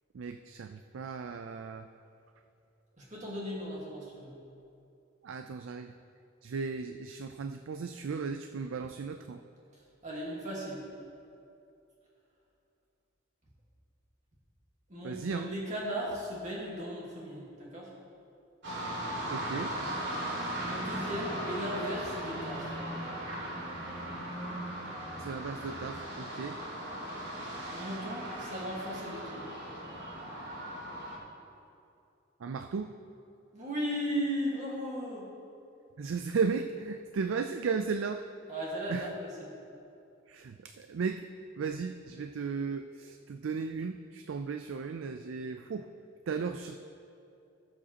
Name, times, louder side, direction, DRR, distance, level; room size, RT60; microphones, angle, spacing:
voice 1, 0.1-1.9 5.2-5.9 6.4-9.4 15.0-15.5 19.3-19.7 25.2-26.6 32.4-32.9 36.0-38.3 38.9-39.1 40.3-41.3 41.6-45.9 46.3-46.7, right 5 dB, 85° right, 8 dB, 0.4 m, -35 dB
voice 2, 3.0-4.3 10.0-10.8 14.9-17.9 20.6-22.7 27.7-29.5 33.5-35.3 38.5-39.5, equal, 40° right, -5 dB, 1.6 m, -36 dB
sound 1, 18.6-31.2, right 1 dB, 65° right, 2.3 m, -38 dB
18.0 x 7.5 x 2.9 m, 2.6 s
head